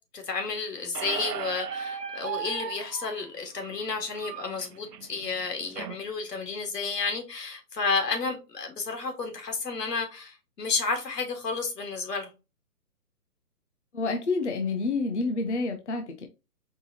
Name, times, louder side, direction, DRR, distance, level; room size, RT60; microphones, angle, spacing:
voice 1, 0.1-12.3, left 4 dB, 80° left, 1.9 m, -31 dB
Squeak, 0.9-6.0, right 8 dB, 80° right, 0.7 m, -37 dB
voice 2, 13.9-16.3, left 3 dB, 50° left, 0.6 m, -28 dB
4.6 x 3.4 x 2.8 m
hypercardioid pair, 170°, 48 cm